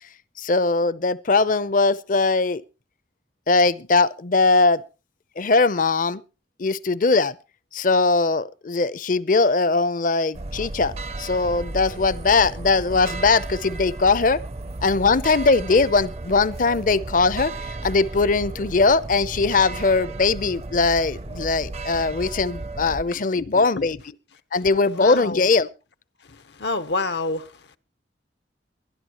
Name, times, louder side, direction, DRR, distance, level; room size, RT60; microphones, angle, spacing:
voice 1, 0.4-2.6 3.5-4.8 5.4-6.2 6.6-7.4 7.7-14.4 14.8-24.0 24.5-25.7, left 3 dB, 50° left, 0.6 m, -20 dB
sound 1, 10.3-23.0, right 2 dB, 35° right, 0.6 m, -34 dB
voice 2, 23.1-23.8 25.0-25.5 26.6-27.5, left 3 dB, 75° left, 0.9 m, -28 dB
22.5 x 11.5 x 3.0 m
head